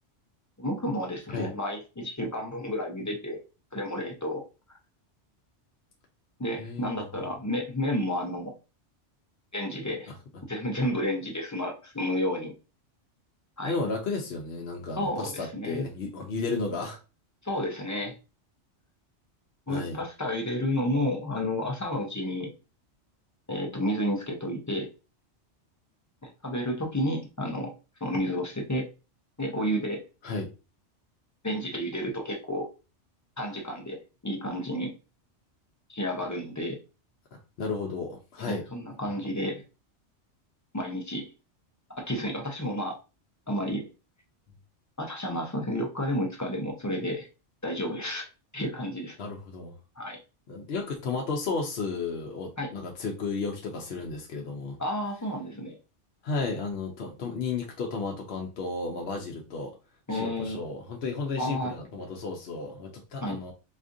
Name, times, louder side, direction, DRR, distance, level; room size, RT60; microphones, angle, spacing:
voice 1, 0.6-3.4 3.7-4.4 6.4-8.5 9.5-10.1 10.5-12.5 13.6-13.7 15.0-15.8 17.4-18.1 19.7-22.5 23.5-24.9 26.2-27.7 28.0-28.9 29.4-30.0 31.4-32.7 33.4-34.9 35.9-36.8 38.4-39.6 40.7-41.3 41.9-43.0 43.5-43.9 45.0-47.3 47.6-48.3 48.5-49.2 50.0-50.2 52.6-52.7 54.8-55.8 60.1-60.6 61.4-61.7 63.2-63.4, equal, 20° left, 1 dB, 0.5 m, -31 dB
voice 2, 6.6-7.3 10.1-10.2 13.6-17.0 19.7-20.0 30.2-30.5 37.3-38.7 49.2-49.8 50.5-54.8 56.2-59.7 60.1-63.5, left 4 dB, 60° left, 1 dB, 0.8 m, -33 dB
4.1 x 2.5 x 2.5 m, 0.31 s
omnidirectional pair, 1.2 m